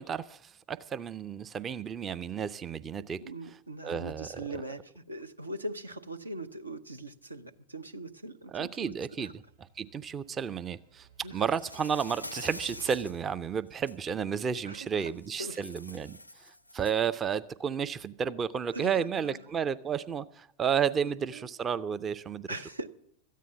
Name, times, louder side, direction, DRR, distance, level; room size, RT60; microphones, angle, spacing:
voice 1, 0.0-3.2 3.8-4.5 8.5-9.3 9.8-22.5, right 7 dB, 25° right, 0.5 m, -32 dB
voice 2, 3.2-9.3 11.2-11.5 14.6-15.6 18.7-19.4 21.0-21.5 22.5-22.9, right 1 dB, 80° right, 0.8 m, -41 dB
sound 1, 8.2-13.6, right 8 dB, 65° right, 7.7 m, -58 dB
Insect, 11.4-13.2 13.7-14.0 15.2-17.1, left 1 dB, 85° left, 0.5 m, -45 dB
13.5 x 9.3 x 7.2 m
figure-of-eight pair, 90°, 0 cm